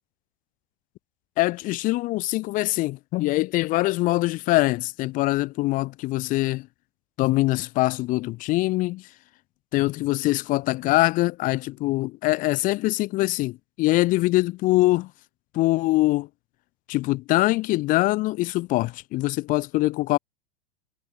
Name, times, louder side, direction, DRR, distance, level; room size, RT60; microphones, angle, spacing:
voice 1, 1.4-6.7 7.2-9.0 9.7-15.1 15.5-16.3 16.9-20.2, left 19 dB, 30° left, 0.5 m, -23 dB
hypercardioid pair, 125°, 30 cm